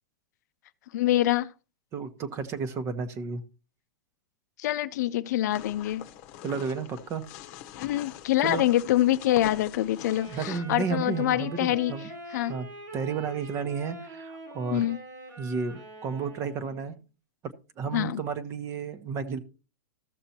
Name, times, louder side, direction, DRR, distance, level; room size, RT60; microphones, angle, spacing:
voice 1, 0.9-1.5 4.6-6.1 7.8-11.9 12.3-12.5 14.7-15.0 17.9-18.2, left 14 dB, 65° left, 0.5 m, -25 dB
voice 2, 1.9-3.4 6.4-7.2 8.4-8.7 10.3-12.1 12.5-12.7 12.9-14.9 15.4-17.0 17.8-19.4, right 5 dB, 30° right, 1.1 m, -32 dB
sound 1, 5.5-10.6, left 12 dB, 45° left, 0.9 m, -43 dB
Wind instrument woodwind instrument, 10.0-16.9, right 2 dB, 85° right, 4.1 m, -44 dB
14.5 x 6.7 x 2.9 m
supercardioid pair, 145°, 10 cm